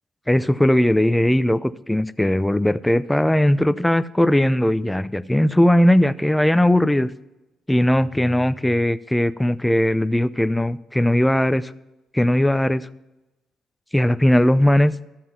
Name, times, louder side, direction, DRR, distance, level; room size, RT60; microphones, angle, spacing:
voice 1, 0.3-7.1 7.7-11.7 12.1-12.9 13.9-14.9, left 1 dB, 10° left, 15 dB, 0.5 m, -18 dB
13.0 x 7.5 x 5.7 m, 1.0 s
supercardioid pair, 60°, 0 cm